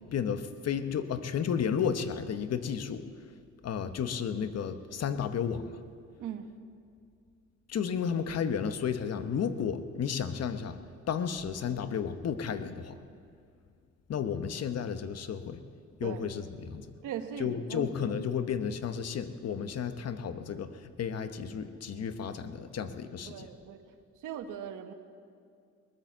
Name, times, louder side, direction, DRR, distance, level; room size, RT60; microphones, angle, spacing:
voice 1, 0.1-3.1 3.6-5.8 7.7-10.8 11.1-13.0 14.1-15.6 16.0-16.9 17.4-23.5, left 7 dB, 55° left, 10 dB, 1.0 m, -32 dB
voice 2, 6.2-6.5 16.0-16.2 17.0-18.1 23.3-23.8 24.2-24.9, right 8 dB, 85° right, 7 dB, 1.2 m, -39 dB
20.5 x 9.0 x 7.2 m, 2.3 s
cardioid pair, 90°, 30 cm